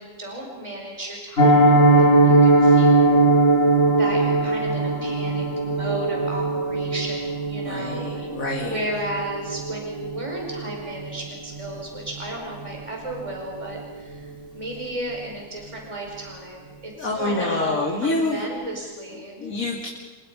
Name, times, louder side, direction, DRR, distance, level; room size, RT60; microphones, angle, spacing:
voice 1, 0.0-3.2 4.0-8.1 8.6-17.8 18.0-19.4, right 1 dB, 20° right, -1 dB, 5.0 m, -34 dB
Piano, 1.4-12.3 12.5-12.7 13.1-13.2 13.6-13.8 14.1-14.2, right 2 dB, 50° left, 3.2 m, -20 dB
voice 2, 7.5-8.8 16.9-18.4 19.1-19.9, left 2 dB, 85° left, -2 dB, 3.3 m, -27 dB
29.5 x 29.0 x 5.4 m, 1.3 s
omnidirectional pair, 1.4 m